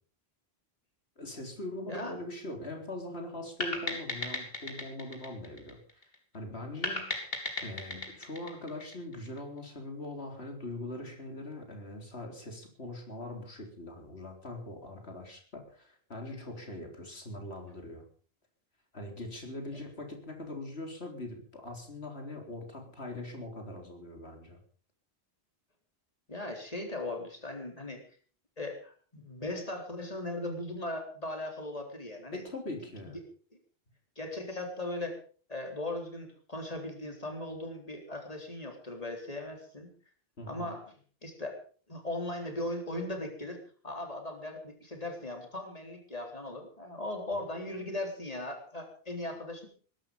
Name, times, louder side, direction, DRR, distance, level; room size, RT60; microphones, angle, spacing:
voice 1, 1.2-18.1 18.9-24.6 32.3-33.2 40.4-40.7, left 1 dB, 80° left, 4 dB, 4.2 m, -42 dB
voice 2, 1.8-2.2 26.3-28.0 28.6-32.4 34.2-35.2 35.5-39.9 40.5-40.9 41.2-41.6 41.9-49.7, left 1 dB, 35° left, 3 dB, 4.1 m, -38 dB
sound 1, 3.6-6.1 6.8-9.4, left 2 dB, 65° left, 3.3 m, -36 dB
21.0 x 12.0 x 5.3 m, 0.42 s
omnidirectional pair, 1.1 m